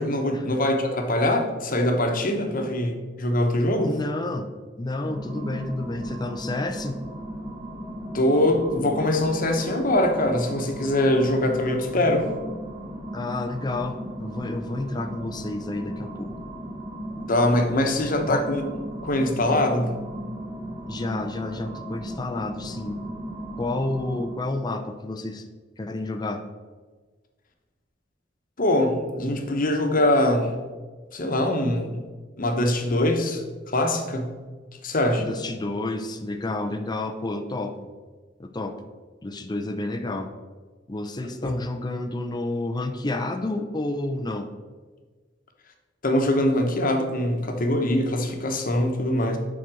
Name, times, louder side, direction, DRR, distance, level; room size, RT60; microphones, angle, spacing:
voice 1, 0.0-4.0 8.1-12.3 17.3-18.6 19.0-19.9 28.6-30.6 31.1-32.0 32.4-33.4 33.7-34.3 34.8-35.3 41.4-41.5 46.0-49.4, left 1 dB, 50° left, 4 dB, 1.1 m, -23 dB
voice 2, 3.8-4.5 4.8-7.0 13.1-16.4 18.3-18.5 20.9-23.0 23.6-25.4 25.8-26.4 35.2-37.9 38.4-38.8 39.2-40.3 40.9-44.5, left 2 dB, 25° left, 6 dB, 0.5 m, -30 dB
sound 1, 4.9-24.6, equal, 20° right, 1.2 m, -36 dB
7.4 x 4.1 x 6.2 m, 1.4 s
head